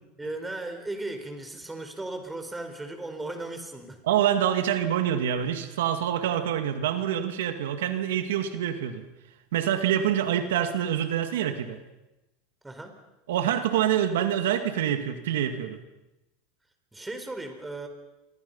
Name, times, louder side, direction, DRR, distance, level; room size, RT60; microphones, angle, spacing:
voice 1, 0.2-4.0 12.6-12.9 16.9-17.9, right 2 dB, 10° right, 6 dB, 4.4 m, -36 dB
voice 2, 4.0-9.1 9.5-11.8 13.3-15.8, right 10 dB, 90° right, 7 dB, 2.2 m, -26 dB
30.0 x 24.0 x 5.6 m, 0.97 s
supercardioid pair, 125°, 0 cm